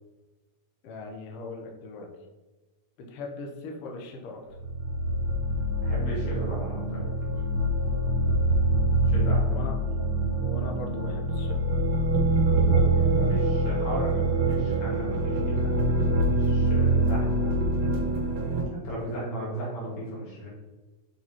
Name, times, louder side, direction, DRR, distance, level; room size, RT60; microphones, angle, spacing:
voice 1, 0.8-2.1 3.0-4.4 9.1-9.8 10.4-11.6, left 2 dB, 85° left, 1 dB, 1.3 m, -39 dB
sound 1, 4.6-18.6, right 2 dB, 55° right, 2.5 m, -25 dB
voice 2, 5.8-7.3 9.0-9.6 9.9-10.0 12.5-17.5 18.7-20.5, equal, 55° left, -6 dB, 3.5 m, -35 dB
7.6 x 4.2 x 4.4 m, 1.2 s
omnidirectional pair, 4.1 m